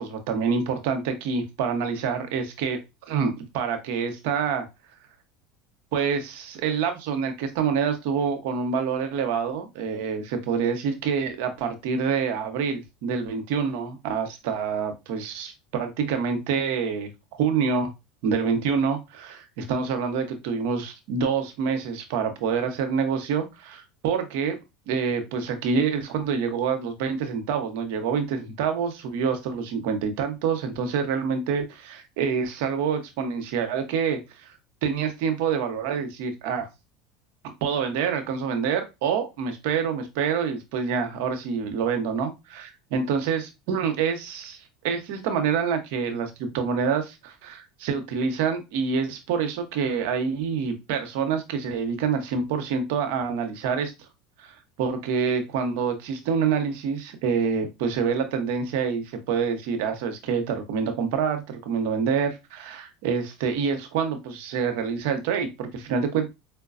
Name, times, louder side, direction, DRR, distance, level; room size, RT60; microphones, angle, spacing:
voice 1, 0.0-2.8 3.1-4.7 5.9-17.1 17.4-17.9 18.2-24.6 24.9-34.5 34.8-36.7 37.6-44.6 44.8-53.9 54.4-66.3, right 6 dB, 70° right, 7 dB, 0.8 m, -27 dB
4.7 x 2.2 x 2.5 m, 0.24 s
hypercardioid pair, 90°, 0 cm